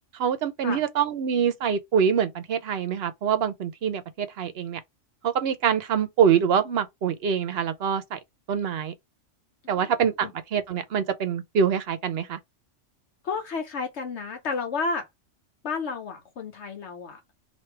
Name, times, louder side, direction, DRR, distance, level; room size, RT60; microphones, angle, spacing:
voice 1, 0.1-4.8 5.2-8.2 8.5-8.9 9.7-12.4, right 7 dB, 60° right, 0.8 m, -25 dB
voice 2, 13.2-15.1 15.6-17.2, left 4 dB, 65° left, 1.0 m, -31 dB
3.2 x 2.6 x 4.5 m
omnidirectional pair, 1.3 m